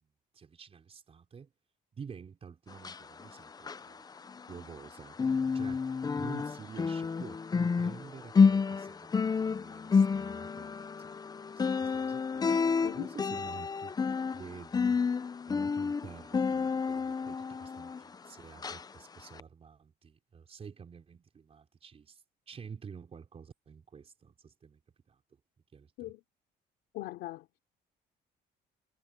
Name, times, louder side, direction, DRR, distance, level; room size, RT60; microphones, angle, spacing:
voice 1, 0.3-1.5 1.9-4.0 4.5-5.9 6.2-11.2 11.6-12.5 12.9-15.0 15.5-24.8 25.1-25.2 25.7-26.1, right 6 dB, 35° right, 4.7 m, -49 dB
sound 1, 2.7-4.9 5.1-18.3 18.6-18.8 19.3-19.4, left 5 dB, 25° left, 0.6 m, -30 dB
voice 2, 26.9-27.6, left 17 dB, 90° left, 3.3 m, -40 dB
cardioid pair, 110°, 17 cm